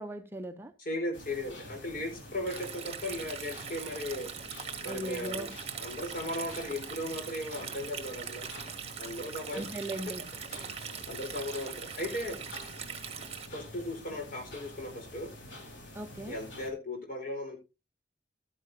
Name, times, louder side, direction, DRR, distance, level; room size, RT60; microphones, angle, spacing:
voice 1, 0.0-0.7 4.9-5.5 9.5-10.2 15.9-16.4, right 1 dB, 15° right, 0.7 m, -38 dB
voice 2, 0.8-4.3 4.8-5.5 5.8-8.5 9.0-9.6 10.6-10.7 11.1-12.4 13.5-15.3 16.3-17.6, left 1 dB, 50° left, 4.8 m, -37 dB
sound 1, 1.1-16.7, left 1 dB, 85° left, 4.1 m, -48 dB
Stream, 2.5-13.5, right 7 dB, 35° right, 1.6 m, -42 dB
13.0 x 10.0 x 2.8 m
head